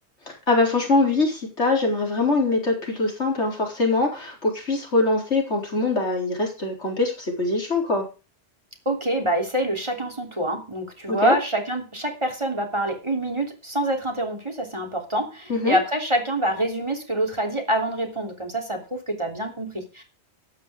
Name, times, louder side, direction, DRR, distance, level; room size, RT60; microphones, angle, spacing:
voice 1, 0.3-8.0 11.1-11.3 15.5-15.8, left 3 dB, 80° left, 1 dB, 4.5 m, -23 dB
voice 2, 8.8-20.0, right 1 dB, 25° right, 4 dB, 3.3 m, -26 dB
13.0 x 9.4 x 5.0 m, 0.32 s
omnidirectional pair, 1.2 m